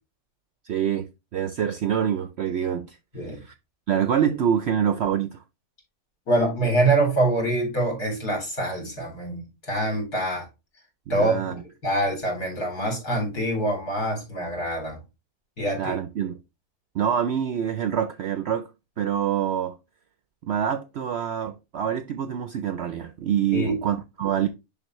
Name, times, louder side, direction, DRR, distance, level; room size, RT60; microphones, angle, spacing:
voice 1, 0.7-3.0 3.4-3.5 3.9-5.4 11.1-11.5 15.8-16.4 16.9-18.7 19.0-19.8 20.4-24.5, right 9 dB, 70° right, 0.6 m, -26 dB
voice 2, 6.3-10.5 11.1-15.0 15.6-16.0 23.5-23.8, right 1 dB, 85° left, 4.2 m, -25 dB
11.0 x 3.6 x 3.0 m
omnidirectional pair, 1.6 m